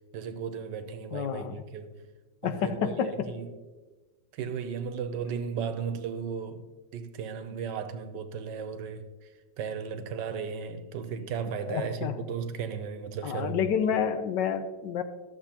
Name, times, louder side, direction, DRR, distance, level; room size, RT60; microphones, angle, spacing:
voice 1, 0.1-2.0 2.4-3.6 4.3-9.3 9.6-13.7 13.9-14.0, right 6 dB, 75° right, 1.3 m, -35 dB
voice 2, 1.1-1.6 2.4-3.3 11.6-12.1 13.2-15.0, left 8 dB, 80° left, 1.3 m, -29 dB
13.5 x 7.0 x 2.9 m
omnidirectional pair, 2.0 m